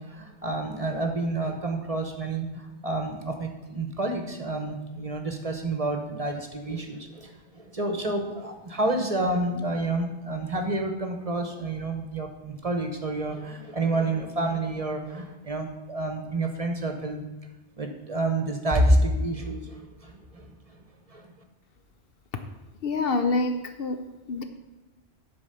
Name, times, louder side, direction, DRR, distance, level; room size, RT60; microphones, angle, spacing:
voice 1, 0.0-17.2 17.8-20.5 21.1-21.3, right 2 dB, 35° right, 4 dB, 1.0 m, -29 dB
voice 2, 22.8-24.4, left 3 dB, 60° left, 7 dB, 0.9 m, -27 dB
11.0 x 4.5 x 6.8 m, 1.1 s
omnidirectional pair, 1.2 m